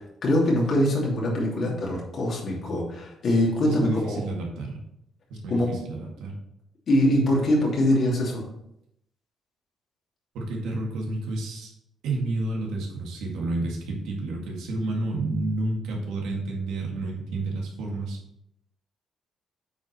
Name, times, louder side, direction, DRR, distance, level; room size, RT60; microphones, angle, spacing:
voice 1, 0.2-4.2 5.5-5.7 6.9-8.4, left 1 dB, 55° left, -2 dB, 2.8 m, -23 dB
voice 2, 3.7-4.8 5.3-6.3 10.3-11.7 12.0-18.2, right 2 dB, 85° right, -1 dB, 1.9 m, -30 dB
8.3 x 4.7 x 4.3 m, 0.78 s
cardioid pair, 90°, 0 cm